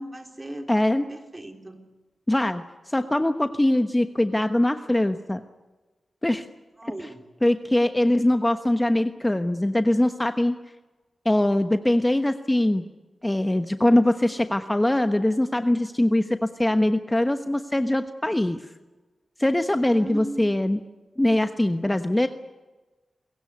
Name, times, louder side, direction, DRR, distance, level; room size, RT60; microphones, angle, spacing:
voice 1, 0.0-0.7 1.1-1.9 6.8-7.3 19.9-20.5, right 1 dB, 25° right, 4 dB, 3.7 m, -37 dB
voice 2, 0.7-1.0 2.3-5.4 6.2-6.5 7.4-10.6 11.2-12.8 13.2-18.6 19.4-20.8 21.2-22.3, left 1 dB, 15° left, 8 dB, 1.1 m, -22 dB
28.0 x 16.5 x 9.6 m, 1.2 s
cardioid pair, 55°, 0 cm